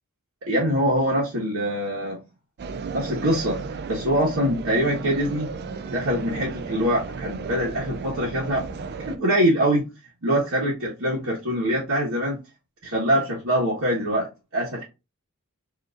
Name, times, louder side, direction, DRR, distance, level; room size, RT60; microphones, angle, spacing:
voice 1, 0.4-2.2 2.9-3.6 3.9-5.5 5.9-8.7 9.1-9.8 10.2-12.4 12.8-14.8, equal, 65° right, 1.3 m, -24 dB
sound 1, 2.6-9.2, right 4 dB, 45° right, 0.4 m, -34 dB
5.0 x 2.8 x 2.5 m
head